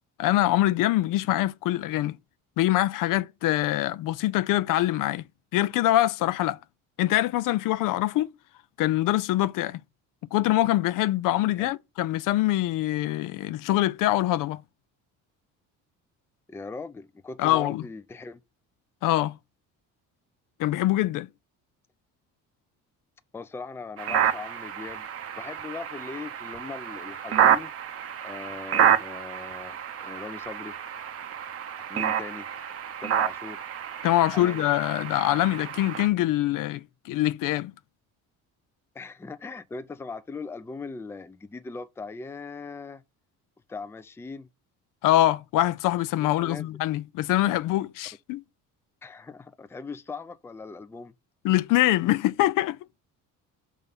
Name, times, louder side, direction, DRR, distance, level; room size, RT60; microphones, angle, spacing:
voice 1, 0.2-2.2 2.6-5.2 5.5-6.6 7.0-8.3 8.8-9.8 10.3-14.6 17.4-17.8 19.0-19.4 20.6-21.3 34.0-37.7 45.0-48.4 51.4-52.8, left 15 dB, 70° left, 0.5 m, -24 dB
voice 2, 16.5-18.4 23.3-27.7 28.2-30.7 31.9-32.5 33.0-33.7 34.3-34.7 38.9-43.0 43.7-44.5 46.2-46.7 49.0-51.1, left 4 dB, 10° left, 0.4 m, -39 dB
sound 1, 24.0-36.1, right 9 dB, 45° right, 0.8 m, -28 dB
5.4 x 3.7 x 5.5 m
cardioid pair, 115°, 33 cm